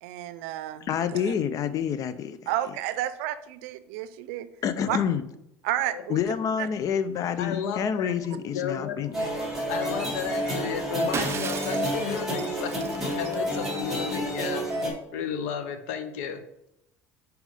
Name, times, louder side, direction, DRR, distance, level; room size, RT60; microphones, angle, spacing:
voice 1, 0.0-1.3 2.5-4.5 4.9-5.0 5.6-6.2 6.6-6.7, right 13 dB, 85° right, 13 dB, 0.5 m, -31 dB
voice 2, 0.9-2.4 4.6-5.2 6.1-9.1, left 8 dB, 50° left, 12 dB, 0.6 m, -28 dB
voice 3, 7.4-9.0 9.7-14.7 15.1-16.4, left 7 dB, 85° left, 9 dB, 0.8 m, -33 dB
sound 1, 9.1-14.9, equal, 5° right, 2.6 m, -29 dB
Shatter, 11.1-13.8, right 7 dB, 35° right, 0.6 m, -36 dB
5.3 x 4.7 x 4.9 m, 0.81 s
supercardioid pair, 100°, 7 cm